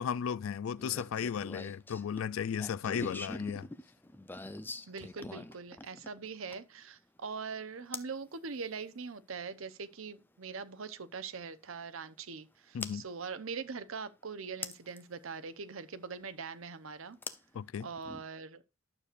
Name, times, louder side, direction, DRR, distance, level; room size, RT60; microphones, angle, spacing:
voice 1, 0.0-3.7 12.7-13.0 17.5-17.9, left 7 dB, 70° left, 0.3 m, -35 dB
sound 1, 0.8-6.8 7.9-8.2 10.1-10.2 12.8-13.0 14.6-15.0 17.2-18.2, left 2 dB, 10° left, 0.6 m, -43 dB
voice 2, 4.9-17.2 17.8-18.6, right 5 dB, 70° right, 0.8 m, -42 dB
11.5 x 6.7 x 2.5 m
head